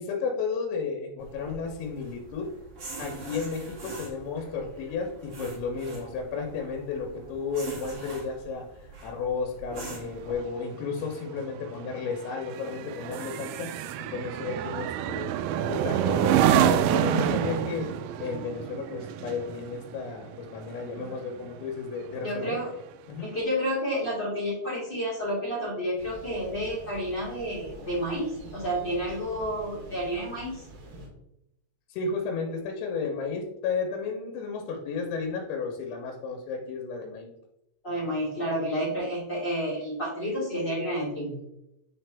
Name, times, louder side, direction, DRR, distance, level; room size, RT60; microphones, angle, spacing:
voice 1, 0.0-2.5 3.0-8.7 9.0-13.7 14.1-15.3 15.7-17.9 18.2-22.6 23.1-23.3 31.9-37.3, left 5 dB, 85° left, 2 dB, 3.5 m, -33 dB
sound 1, 1.2-10.3, right 3 dB, 40° right, 2.2 m, -43 dB
sound 2, 10.0-21.7 22.1-22.4, right 10 dB, 85° right, 2.6 m, -28 dB
voice 2, 22.2-22.7 23.2-30.6 37.8-41.3, equal, 45° left, -8 dB, 1.4 m, -30 dB
Thunder, 26.0-31.1, right 1 dB, 70° right, 4.4 m, -46 dB
9.4 x 4.0 x 3.4 m, 0.84 s
omnidirectional pair, 5.8 m